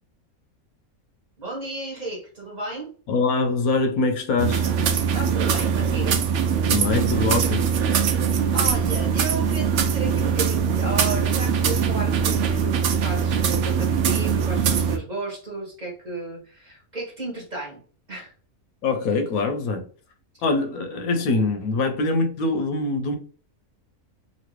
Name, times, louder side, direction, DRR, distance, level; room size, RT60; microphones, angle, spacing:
voice 1, 1.4-2.9 5.1-6.2 8.5-17.8 18.1-18.3, right 2 dB, 30° right, 1.1 m, -33 dB
voice 2, 3.1-4.6 6.7-7.7 18.8-19.8 20.4-23.2, left 3 dB, 80° left, 1.0 m, -23 dB
sound 1, 4.4-15.0, right 7 dB, 65° right, 0.8 m, -22 dB
3.0 x 2.7 x 3.0 m
omnidirectional pair, 1.5 m